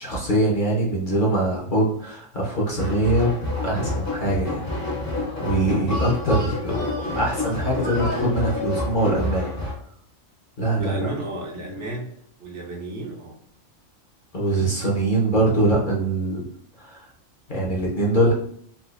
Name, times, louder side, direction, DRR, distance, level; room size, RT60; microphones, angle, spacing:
voice 1, 0.0-3.4 3.6-4.6 5.4-6.8 7.1-9.5 10.6-11.1 14.3-16.4 16.8-17.1 17.5-18.3, right 1 dB, 40° left, -4 dB, 0.9 m, -22 dB
sound 1, 2.8-9.7, left 2 dB, 65° left, 1.8 m, -28 dB
voice 2, 10.8-12.1 12.4-13.4, right 1 dB, 65° right, -2 dB, 1.1 m, -32 dB
3.9 x 2.5 x 2.5 m, 0.62 s
omnidirectional pair, 1.4 m